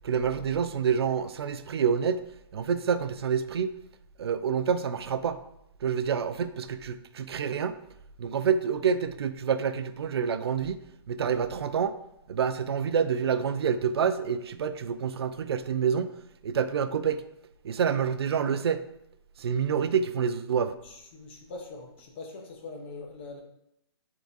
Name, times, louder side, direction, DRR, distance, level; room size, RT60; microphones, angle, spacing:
voice 1, 0.0-2.2 2.5-3.7 4.2-5.4 5.8-7.8 8.2-10.8 11.1-12.0 12.3-16.1 16.4-17.2 17.6-18.8 19.4-20.7, right 7 dB, 70° right, 0.4 m, -27 dB
voice 2, 20.8-23.4, left 3 dB, 25° left, 0.7 m, -42 dB
3.7 x 3.4 x 3.9 m
hypercardioid pair, 175°, 14 cm